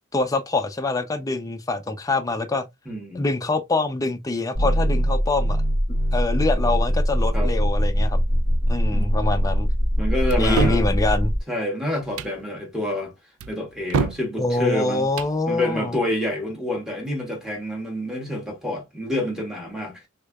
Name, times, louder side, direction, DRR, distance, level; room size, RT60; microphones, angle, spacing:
voice 1, 0.1-2.6 3.1-5.6 6.1-8.2 8.7-9.7 10.4-11.3 14.4-16.0, left 2 dB, 15° left, 0.5 m, -25 dB
voice 2, 2.8-3.2 7.3-7.5 8.9-9.2 10.0-11.0 11.5-13.1 13.5-15.1 15.5-20.0, left 1 dB, 5° right, 1.3 m, -28 dB
sound 1, 4.5-11.4, equal, 45° right, 1.4 m, -22 dB
sound 2, 10.3-10.9 12.0-12.4 13.4-14.3 15.0-15.4, right 5 dB, 80° right, 0.4 m, -26 dB
3.6 x 3.2 x 2.2 m
head